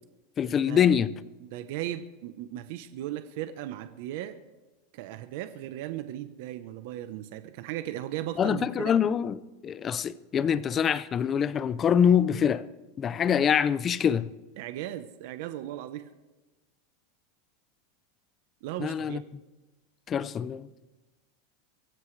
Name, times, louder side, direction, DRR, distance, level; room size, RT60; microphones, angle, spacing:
voice 1, 0.4-1.1 8.4-12.6 13.0-14.3 18.8-19.2 20.1-20.7, left 8 dB, 20° left, 0.5 m, -25 dB
voice 2, 1.4-4.4 4.9-8.9 14.6-16.0 18.6-19.2, right 13 dB, 55° right, 0.9 m, -37 dB
23.5 x 15.5 x 3.3 m
supercardioid pair, 155°, 0 cm